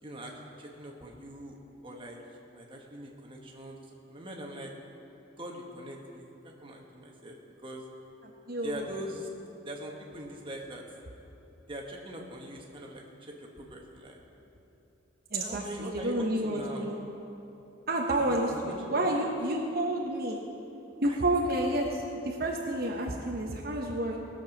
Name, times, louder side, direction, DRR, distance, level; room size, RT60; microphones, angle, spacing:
voice 1, 0.0-1.6 1.8-2.2 2.5-4.7 5.4-7.4 7.6-7.8 8.6-9.3 9.6-10.8 11.7-14.2 15.4-16.9 18.1-19.1 21.0-21.2, right 1 dB, 25° right, -1 dB, 1.4 m, -42 dB
voice 2, 8.5-8.9 15.3-17.0 17.9-20.4 21.0-24.2, right 1 dB, 50° right, 0 dB, 1.0 m, -30 dB
18.5 x 7.2 x 6.0 m, 2.9 s
head